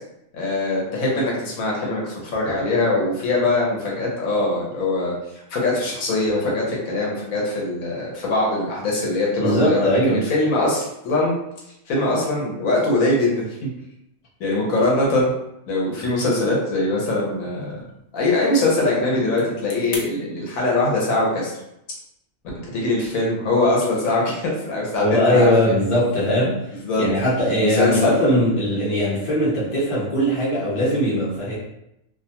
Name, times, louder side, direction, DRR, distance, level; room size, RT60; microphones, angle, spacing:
voice 1, 0.3-5.1 5.5-11.3 11.9-13.7 14.4-15.3 15.7-17.8 18.1-21.6 22.7-25.7 26.8-27.0 27.5-28.4, left 2 dB, 80° left, -3 dB, 1.2 m, -22 dB
voice 2, 9.4-10.2 25.0-26.6 27.0-31.5, equal, 25° left, -8 dB, 0.8 m, -20 dB
sound 1, 15.9-20.1, left 3 dB, 60° left, 0.9 m, -42 dB
2.6 x 2.2 x 2.8 m, 0.83 s
omnidirectional pair, 1.4 m